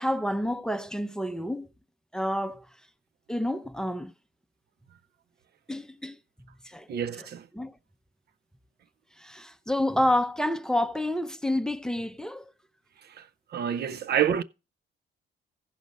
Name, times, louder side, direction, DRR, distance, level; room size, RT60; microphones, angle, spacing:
voice 1, 0.0-1.7 2.1-2.7 3.3-4.1 5.7-6.2 6.6-6.9 7.2-7.3 7.5-7.8 9.2-12.5 13.7-14.0, left 1 dB, 5° left, 0.6 m, -29 dB
voice 2, 6.9-7.5 13.1-13.3 13.5-14.4, right 9 dB, 55° right, 0.5 m, -28 dB
14.5 x 5.1 x 5.2 m
cardioid pair, 90°, 20 cm